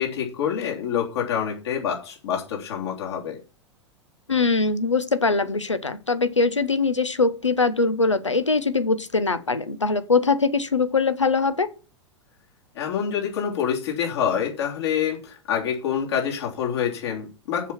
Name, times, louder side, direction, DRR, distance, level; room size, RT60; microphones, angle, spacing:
voice 1, 0.0-3.4 12.7-17.7, left 8 dB, 65° left, 3.2 m, -26 dB
voice 2, 4.3-11.7, left 4 dB, 90° left, 0.9 m, -22 dB
7.1 x 6.0 x 7.2 m
figure-of-eight pair, 95°, 15 cm